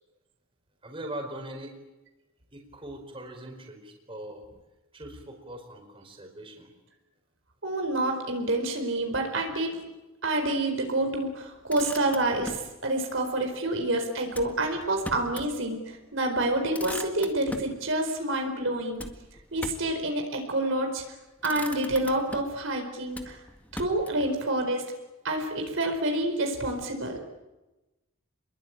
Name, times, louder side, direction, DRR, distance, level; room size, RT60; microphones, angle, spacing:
voice 1, 0.8-1.7 2.5-4.4 4.9-6.7, right 1 dB, 25° right, 3 dB, 4.8 m, -41 dB
voice 2, 7.6-9.8 10.2-19.0 19.5-21.0 21.4-23.4 23.7-24.8 25.2-27.2, right 1 dB, 65° right, 3 dB, 4.5 m, -28 dB
Motor vehicle (road), 11.5-12.7 14.3-15.5 15.9-16.0 16.4-17.8 19.0-20.0 20.8-21.1 21.4-22.6 23.1-24.3, left 1 dB, 10° left, 1.9 m, -40 dB
29.5 x 22.0 x 8.9 m, 1.0 s
head